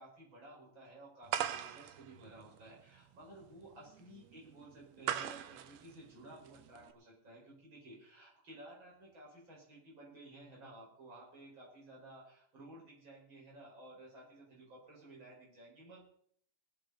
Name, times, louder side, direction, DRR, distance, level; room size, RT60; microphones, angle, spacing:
voice 1, 0.0-16.0, right 1 dB, 35° right, -4 dB, 5.7 m, -55 dB
sound 1, 1.3-6.9, right 11 dB, 70° right, 1.8 m, -41 dB
19.5 x 10.0 x 4.1 m, 0.64 s
omnidirectional pair, 3.7 m